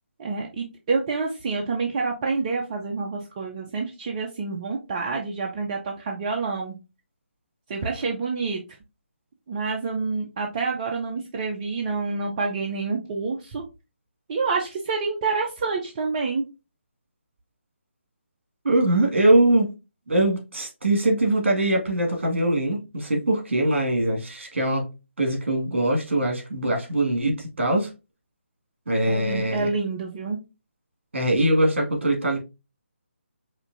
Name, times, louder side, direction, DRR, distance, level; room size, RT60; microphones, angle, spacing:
voice 1, 0.2-6.8 7.7-8.6 9.5-13.6 14.3-16.4 29.1-30.4, right 4 dB, 30° right, 0.6 m, -28 dB
voice 2, 18.6-19.7 20.1-24.9 25.2-27.9 28.9-29.7 31.1-32.4, right 1 dB, 60° right, 1.9 m, -22 dB
5.0 x 2.6 x 2.6 m
figure-of-eight pair, 150°, 7 cm